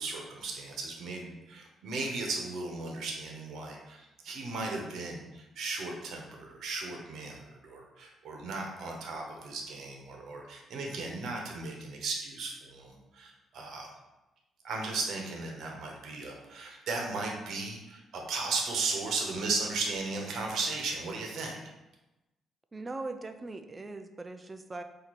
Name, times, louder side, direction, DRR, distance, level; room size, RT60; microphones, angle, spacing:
voice 1, 0.0-13.9 14.6-21.6, right 3 dB, 70° right, 1 dB, 1.0 m, -36 dB
voice 2, 22.7-24.8, right 3 dB, 25° right, 8 dB, 0.4 m, -40 dB
4.5 x 2.8 x 4.2 m, 1.0 s
cardioid pair, 90°, 0 cm